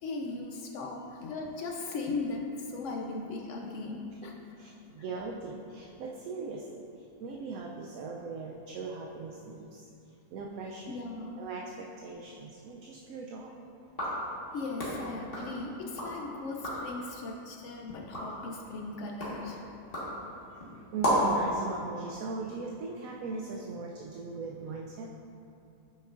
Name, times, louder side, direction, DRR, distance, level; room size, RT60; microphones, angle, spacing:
voice 1, 0.0-4.4 10.9-11.5 14.5-19.6, left 3 dB, 65° left, 1 dB, 0.8 m, -38 dB
voice 2, 4.6-6.8 7.2-9.9 10.3-10.9 11.4-13.6 20.7-25.2, right 4 dB, 70° right, -1 dB, 1.0 m, -39 dB
sound 1, 13.8-16.2 16.5-17.0 17.4-21.4, equal, 40° left, 1.8 m, -34 dB
8.7 x 6.2 x 2.5 m, 2.6 s
omnidirectional pair, 1.6 m